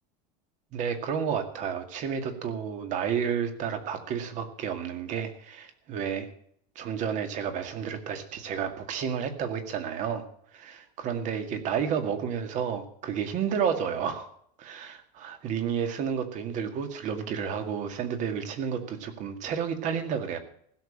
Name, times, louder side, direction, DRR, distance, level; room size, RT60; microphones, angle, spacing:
voice 1, 0.7-6.3 6.8-10.3 10.5-14.3 14.6-20.4, right 7 dB, 40° right, 8 dB, 2.1 m, -31 dB
16.0 x 7.1 x 8.7 m, 0.65 s
cardioid pair, 165°, 20 cm